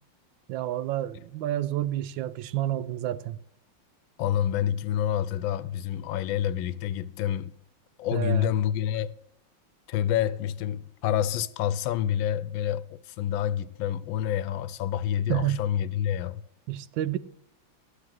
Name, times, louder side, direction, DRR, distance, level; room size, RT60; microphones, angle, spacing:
voice 1, 0.5-3.4 8.1-8.5 15.3-15.6 16.7-17.2, right 13 dB, 80° right, 1.3 m, -29 dB
voice 2, 4.2-7.5 8.0-9.1 9.9-16.4, left 10 dB, 85° left, 1.4 m, -28 dB
12.0 x 6.5 x 7.5 m
omnidirectional pair, 2.1 m